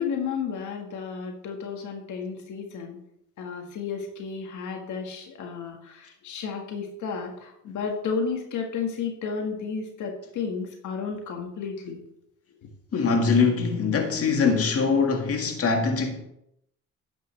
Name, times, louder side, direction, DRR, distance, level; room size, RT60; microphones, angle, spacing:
voice 1, 0.0-3.0 3.4-12.0 12.6-12.7, left 5 dB, 80° left, 1.8 m, -32 dB
voice 2, 12.9-16.2, left 5 dB, 50° left, 1.9 m, -23 dB
12.5 x 9.3 x 3.3 m
cardioid pair, 90°, 30 cm